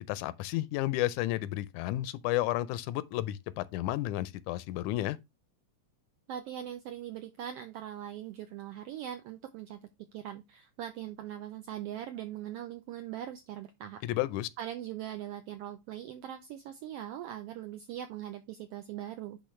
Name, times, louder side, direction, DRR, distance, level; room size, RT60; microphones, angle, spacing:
voice 1, 0.1-5.2 14.0-14.5, left 15 dB, 90° left, 2.0 m, -32 dB
voice 2, 6.3-9.8 10.1-14.0 14.6-19.4, right 11 dB, 85° right, 1.3 m, -41 dB
10.0 x 3.5 x 3.1 m
omnidirectional pair, 3.4 m